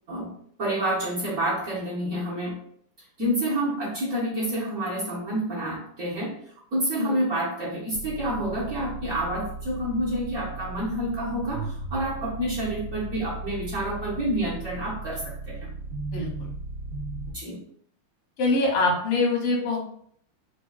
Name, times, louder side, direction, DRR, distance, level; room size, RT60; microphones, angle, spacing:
voice 1, 0.1-2.6 3.2-15.7 17.3-17.6, right 1 dB, 50° right, -7 dB, 1.1 m, -28 dB
sound 1, 7.9-17.3, right 3 dB, 85° right, 0.8 m, -36 dB
voice 2, 16.1-16.5 18.4-19.8, left 3 dB, 90° left, -1 dB, 1.8 m, -24 dB
4.8 x 2.3 x 2.3 m, 0.64 s
omnidirectional pair, 2.4 m